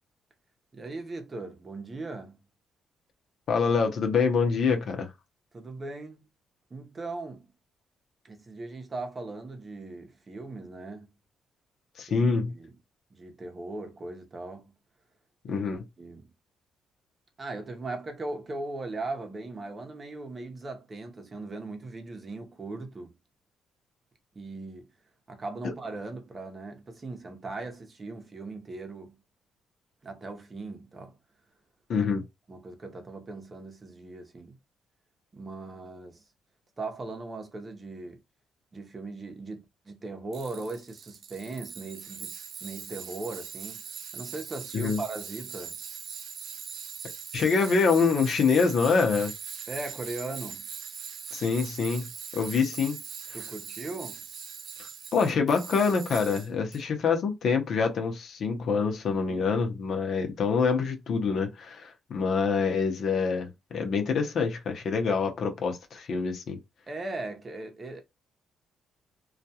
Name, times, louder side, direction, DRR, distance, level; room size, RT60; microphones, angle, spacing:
voice 1, 0.7-2.4 5.5-6.2 6.7-7.5 8.2-11.1 12.1-12.8 13.2-14.7 15.4-15.6 16.0-16.3 17.4-23.1 24.3-24.9 25.3-29.2 30.0-31.2 31.9-32.1 32.5-34.6 35.3-36.2 36.8-38.2 38.7-42.3 42.6-43.8 44.1-45.8 49.7-50.7 53.3-54.2 59.3-59.5 66.9-68.0, right 2 dB, 30° right, 0.7 m, -39 dB
voice 2, 3.5-5.1 12.0-12.5 15.5-15.8 31.9-32.2 44.7-45.0 47.3-49.3 51.3-53.0 54.8-66.6, left 5 dB, 60° left, 0.7 m, -26 dB
Tools, 40.3-56.8, right 7 dB, 70° right, 0.4 m, -41 dB
2.4 x 2.2 x 2.8 m
cardioid pair, 90°, 0 cm